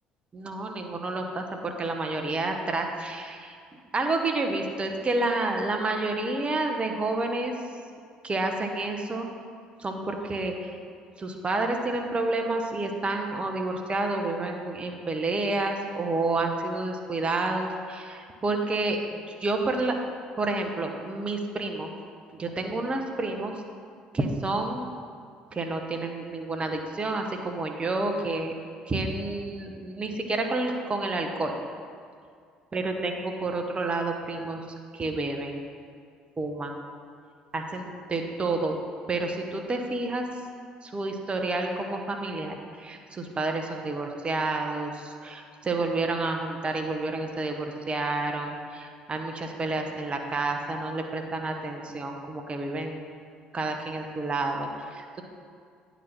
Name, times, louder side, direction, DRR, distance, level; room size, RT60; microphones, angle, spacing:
voice 1, 0.3-7.5 8.2-9.3 9.8-10.7 11.2-20.0 20.4-21.9 22.3-23.5 24.1-24.9 25.5-28.5 28.8-31.5 32.7-34.6 34.9-35.6 36.4-36.9 37.5-38.8 39.1-40.3 40.8-53.1 53.5-55.2, right 2 dB, 30° right, 3 dB, 1.0 m, -29 dB
9.3 x 4.1 x 6.0 m, 2.2 s
hypercardioid pair, 60°, 4 cm